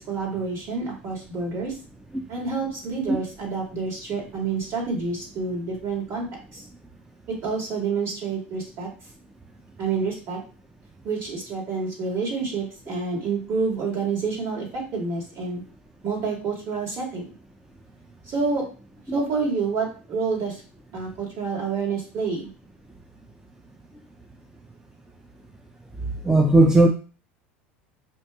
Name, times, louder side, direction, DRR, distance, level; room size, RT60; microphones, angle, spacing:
voice 1, 0.0-1.8 2.3-6.3 6.5-6.6 7.3-8.9 9.8-10.4 11.0-15.6 16.0-17.3 18.3-18.6 19.1-20.6 20.9-22.5, right 4 dB, 50° right, -2 dB, 2.1 m, -28 dB
voice 2, 26.2-26.9, right 2 dB, 10° right, 2 dB, 0.5 m, -16 dB
5.3 x 2.6 x 2.3 m, 0.36 s
hypercardioid pair, 80°, 6 cm